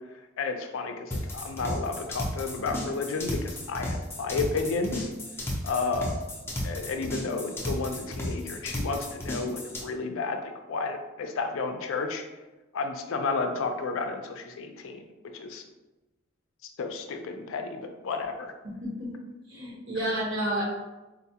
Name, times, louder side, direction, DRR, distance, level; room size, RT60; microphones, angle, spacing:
voice 1, 0.4-5.1 5.6-6.2 6.6-12.2 12.7-15.0 15.3-15.6 16.6-18.5, left 4 dB, 70° left, 5 dB, 0.4 m, -32 dB
sound 1, 1.1-9.8, left 1 dB, 10° left, 0.5 m, -34 dB
voice 2, 18.6-19.1 19.5-20.6, right 1 dB, 60° right, -4 dB, 1.0 m, -30 dB
4.0 x 2.3 x 2.7 m, 1.1 s
head